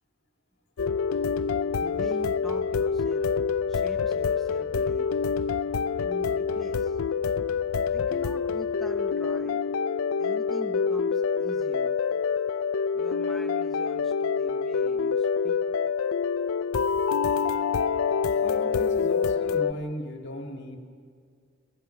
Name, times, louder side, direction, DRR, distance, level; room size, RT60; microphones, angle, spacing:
sound 1, 0.8-19.7, left 6 dB, 85° left, 0.5 m, -26 dB
voice 1, 1.8-3.4 3.7-5.1 5.9-7.0 7.9-9.7 10.2-12.2 12.9-15.6, equal, ahead, 1 dB, 0.7 m, -44 dB
voice 2, 18.4-20.8, equal, 55° left, 3 dB, 2.0 m, -36 dB
29.5 x 16.0 x 5.8 m, 2.2 s
head